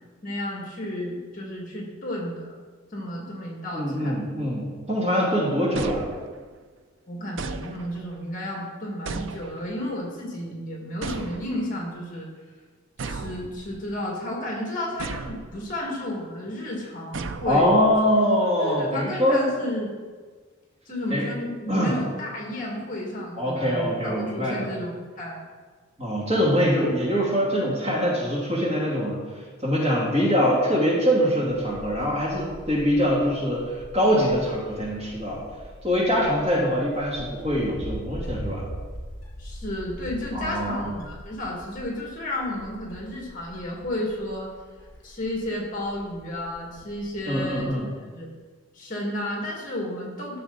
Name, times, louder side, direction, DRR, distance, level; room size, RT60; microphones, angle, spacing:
voice 1, 0.2-2.6 2.9-4.2 7.1-12.3 13.0-17.7 18.6-19.9 20.9-25.4 36.5-36.8 39.4-44.5 45.0-47.8 48.1-48.3 48.8-50.4, left 1 dB, 40° left, -2 dB, 2.2 m, -32 dB
voice 2, 3.7-6.1 17.4-19.4 21.1-21.2 21.7-21.9 23.4-24.7 26.0-35.4 35.8-38.7 40.3-40.8 47.3-47.9, equal, 30° right, -5 dB, 2.7 m, -23 dB
sound 1, 5.7-6.6 7.4-8.2 9.1-9.9 11.0-11.8 13.0-14.0 15.0-15.8 17.1-18.1, right 4 dB, 65° right, 0.5 m, -36 dB
Wind, 31.5-47.7, equal, 65° left, 3.5 m, -42 dB
13.5 x 6.7 x 4.1 m, 1.4 s
head